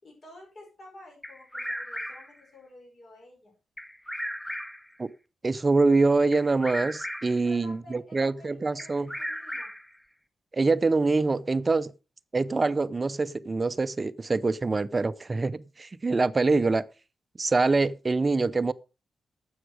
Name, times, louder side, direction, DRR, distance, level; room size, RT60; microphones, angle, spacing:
voice 1, 0.0-3.5 7.4-9.7, left 1 dB, 40° left, 5.3 m, -51 dB
Bird vocalization bird call bird song, 1.2-2.4 3.8-5.0 6.3-7.5 8.8-10.0, equal, 5° left, 0.9 m, -36 dB
voice 2, 5.4-9.1 10.5-11.9 12.3-16.9 17.4-18.7, right 3 dB, 25° right, 0.5 m, -25 dB
12.5 x 8.0 x 4.8 m
wide cardioid pair, 155°, 0 cm